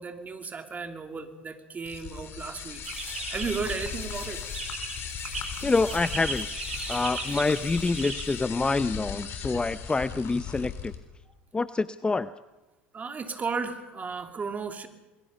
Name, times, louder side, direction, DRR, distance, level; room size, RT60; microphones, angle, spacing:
voice 1, 0.0-2.8 3.3-4.4 12.9-14.9, right 5 dB, 25° right, 6 dB, 2.8 m, -34 dB
sound 1, 1.8-11.0, left 7 dB, 45° left, 3.7 m, -37 dB
sound 2, 2.8-8.5, right 3 dB, 85° right, 5.3 m, -37 dB
voice 2, 5.6-6.5 6.9-10.9 11.5-12.3, left 3 dB, 15° left, 14 dB, 0.7 m, -26 dB
28.0 x 21.5 x 5.4 m, 1.1 s
hypercardioid pair, 75°, 6 cm